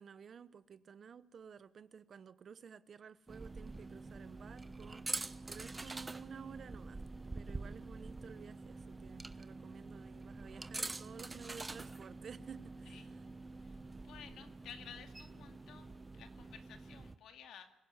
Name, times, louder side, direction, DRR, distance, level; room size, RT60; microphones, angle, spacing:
voice 1, 0.0-7.0 7.3-13.0, right 7 dB, 50° right, 0.9 m, -53 dB
sound 1, 3.3-17.2, right 3 dB, 20° right, 1.0 m, -46 dB
voice 2, 13.5-17.7, left 8 dB, 75° left, 2.3 m, -55 dB
24.0 x 16.5 x 9.6 m
cardioid pair, 90°, 0 cm